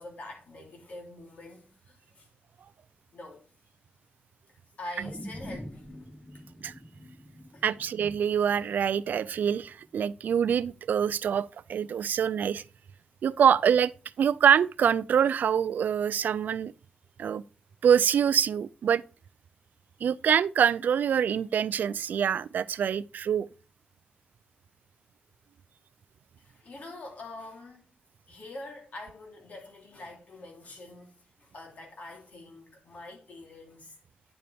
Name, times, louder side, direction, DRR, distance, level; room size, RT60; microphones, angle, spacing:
voice 1, 0.0-2.3 3.1-3.4 4.8-6.1 7.5-7.6 26.4-27.9 28.3-33.9, left 2 dB, 55° left, 3.3 m, -45 dB
sound 1, 5.0-9.5 9.9-10.0, equal, 10° left, 1.0 m, -45 dB
voice 2, 7.6-12.6 13.2-13.9 14.2-16.7 17.2-17.4 17.8-19.0 20.0-23.5, right 8 dB, 90° right, 0.4 m, -25 dB
9.9 x 6.8 x 3.5 m
wide cardioid pair, 165°, 3 cm